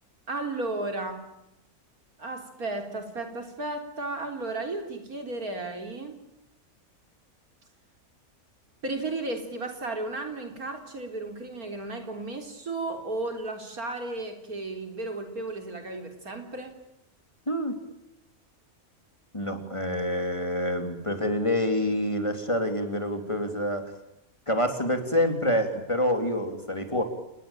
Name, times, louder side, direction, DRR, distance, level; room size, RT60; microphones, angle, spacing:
voice 1, 0.3-1.2 2.2-6.2 8.8-16.8, right 2 dB, 90° right, 5 dB, 4.3 m, -34 dB
voice 2, 17.5-17.8 19.3-23.9 24.5-27.0, left 1 dB, 20° left, 6 dB, 3.5 m, -27 dB
29.5 x 20.0 x 9.0 m, 0.86 s
omnidirectional pair, 1.5 m